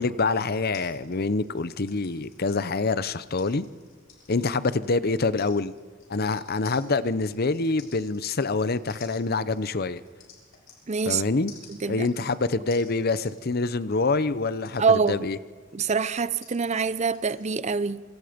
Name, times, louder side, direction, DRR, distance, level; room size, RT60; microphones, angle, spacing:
voice 1, 0.0-3.7 4.3-5.7 6.1-10.0 11.1-11.5 11.9-15.4, left 3 dB, 45° left, 0.7 m, -26 dB
sound 1, 0.7-11.2 11.5-17.4, left 6 dB, 70° left, 6.8 m, -53 dB
voice 2, 10.9-11.2 11.7-12.1 14.8-15.3 15.7-18.0, right 5 dB, 35° right, 0.6 m, -25 dB
27.5 x 25.5 x 5.2 m
head